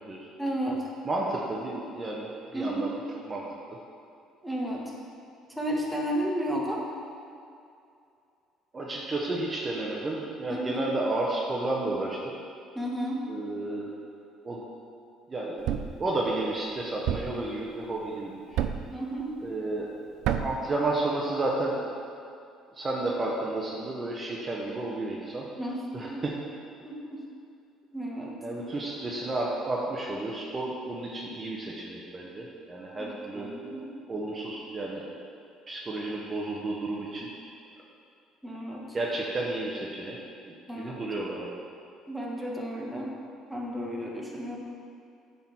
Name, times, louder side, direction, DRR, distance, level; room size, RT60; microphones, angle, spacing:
voice 1, 0.4-0.9 2.5-2.9 4.4-4.9 5.5-6.8 10.5-10.9 12.7-13.2 18.9-19.3 25.6-26.3 26.8-27.2 27.9-28.4 33.0-33.9 38.4-38.8 40.7-41.1 42.1-43.1 43.5-44.6, right 1 dB, ahead, -3 dB, 1.8 m, -33 dB
voice 2, 1.0-2.9 3.3-3.5 8.7-12.2 13.3-13.9 14.4-14.6 15.3-18.6 19.4-19.9 20.4-21.8 22.7-25.5 25.9-26.3 28.4-33.5 34.1-35.1 35.7-37.3 38.9-40.2 40.5-41.5, right 2 dB, 30° right, -3 dB, 1.1 m, -32 dB
Thump thud, 15.7-16.0 17.1-17.4 18.6-19.0 20.2-20.7, right 10 dB, 70° right, 0.4 m, -29 dB
8.9 x 4.1 x 6.1 m, 2.5 s
hypercardioid pair, 65°, 0 cm